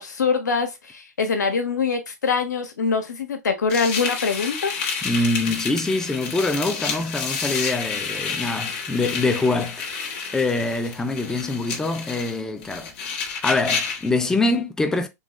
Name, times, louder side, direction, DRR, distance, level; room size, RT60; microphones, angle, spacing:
voice 1, 0.0-4.8, left 5 dB, 90° left, 1.1 m, -24 dB
sound 1, 3.7-14.1, left 5 dB, 40° left, 1.3 m, -30 dB
voice 2, 5.0-9.9 10.3-12.9 13.4-15.1, left 2 dB, 5° left, 0.4 m, -24 dB
3.8 x 2.4 x 3.0 m
hypercardioid pair, 135°, 9 cm